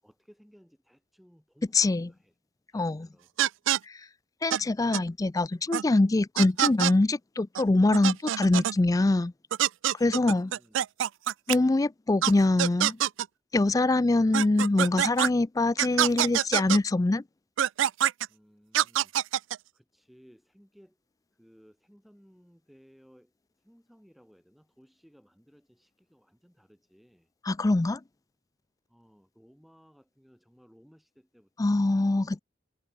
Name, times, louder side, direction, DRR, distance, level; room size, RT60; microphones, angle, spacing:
voice 1, 0.0-2.4 2.7-3.3 10.1-10.8 18.3-21.0 21.3-27.3 28.9-32.4, equal, ahead, 6.3 m, -60 dB
voice 2, 1.7-2.1 2.7-3.1 4.4-9.3 10.0-10.5 11.5-13.0 13.5-17.2 27.5-28.0 31.6-32.4, left 2 dB, 20° left, 0.4 m, -24 dB
sound 1, 3.4-3.8 4.5-4.6 4.9-5.0 5.7-5.8 6.4-6.9 7.6-7.7 7.9-8.7 9.5-11.6 12.2-12.3 12.6-13.3 14.3-15.3 15.8-16.8 17.6-18.3 18.7-19.6, right 11 dB, 85° right, 0.4 m, -25 dB
head